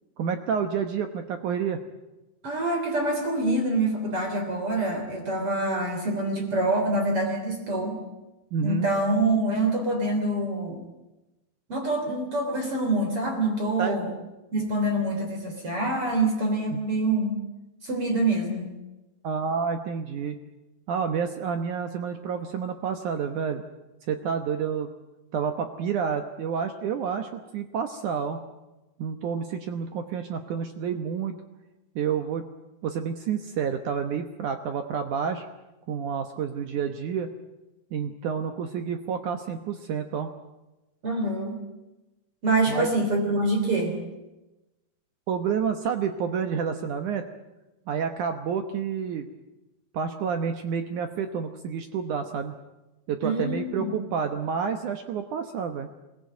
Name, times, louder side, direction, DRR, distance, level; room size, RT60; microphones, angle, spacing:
voice 1, 0.2-1.8 8.5-8.9 13.8-14.0 16.7-16.8 19.2-20.4 20.9-23.6 24.1-24.9 25.3-28.4 29.0-31.4 32.0-32.5 32.8-35.5 35.9-37.3 37.9-40.3 42.7-42.9 45.3-47.3 47.9-49.3 49.9-52.5 53.1-55.9, right 7 dB, 65° right, 7 dB, 2.1 m, -29 dB
voice 2, 2.4-8.0 8.6-10.8 11.7-14.1 14.5-17.4 17.8-18.7 41.0-41.6 42.4-44.0 53.2-53.9, right 2 dB, 35° right, 2 dB, 3.9 m, -26 dB
22.0 x 18.5 x 9.3 m, 1.0 s
omnidirectional pair, 4.7 m